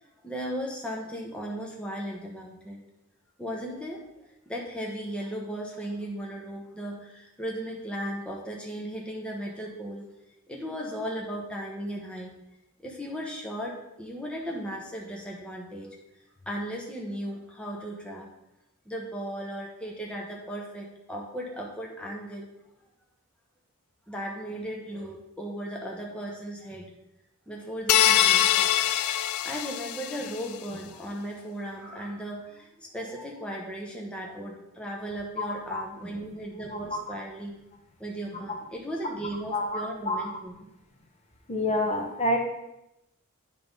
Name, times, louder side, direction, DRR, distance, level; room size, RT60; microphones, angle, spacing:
voice 1, 0.2-2.8 3.4-10.0 10.5-12.3 12.8-15.9 16.5-18.3 18.9-22.5 24.1-26.9 27.5-28.7 29.4-37.6 38.0-40.5, equal, 5° left, -2 dB, 1.0 m, -36 dB
sound 1, 27.9-30.4, left 11 dB, 80° left, 0.4 m, -23 dB
voice 2, 35.4-35.8 39.5-40.2 41.5-42.4, left 1 dB, 30° left, 2 dB, 1.0 m, -28 dB
9.4 x 3.7 x 5.3 m, 0.88 s
head